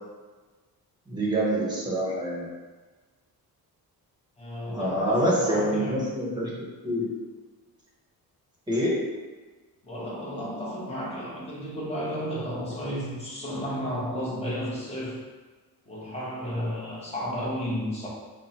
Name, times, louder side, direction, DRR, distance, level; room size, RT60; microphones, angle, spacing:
voice 1, 1.1-2.5 4.7-7.1 8.7-9.1, equal, 10° right, -5 dB, 0.8 m, -26 dB
voice 2, 4.4-6.2 9.8-15.2 15.9-18.1, equal, 15° left, -6 dB, 0.9 m, -33 dB
5.4 x 2.1 x 2.8 m, 1.3 s
wide cardioid pair, 155°, 38 cm